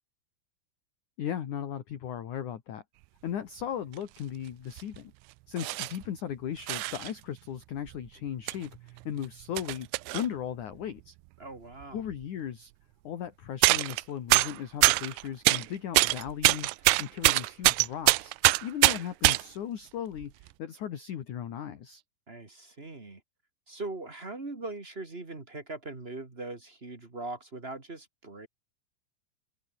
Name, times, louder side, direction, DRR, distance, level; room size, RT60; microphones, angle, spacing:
voice 1, 1.2-2.8 3.2-5.1 5.5-9.9 10.1-11.1 11.9-12.7 13.0-18.3 18.6-22.0, left 9 dB, 55° left, 2.4 m, -37 dB
sound 1, 3.9-4.0 4.8-5.0 5.6-6.1 6.7-7.1 7.9-8.0 8.5-8.6 9.0-10.3 11.8-11.9 12.1-12.2 13.6-14.0 14.3-15.7 15.9-19.4 20.2-20.5, right 22 dB, 90° right, 2.5 m, -24 dB
voice 2, 11.4-12.0 22.3-23.2 23.7-28.5, right 2 dB, 40° right, 0.8 m, -40 dB
omnidirectional pair, 5.8 m